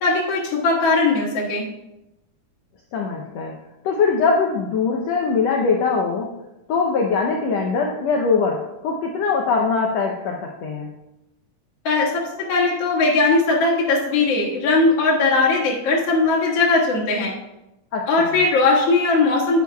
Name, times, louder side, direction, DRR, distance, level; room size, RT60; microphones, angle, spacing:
voice 1, 0.0-1.7 11.8-12.2 12.5-17.3 18.1-19.6, left 3 dB, 50° left, -7 dB, 2.7 m, -19 dB
voice 2, 2.9-3.5 3.8-6.3 6.7-10.9 17.9-18.4, left 4 dB, 80° left, 1 dB, 1.5 m, -22 dB
10.5 x 10.0 x 2.3 m, 0.93 s
omnidirectional pair, 4.0 m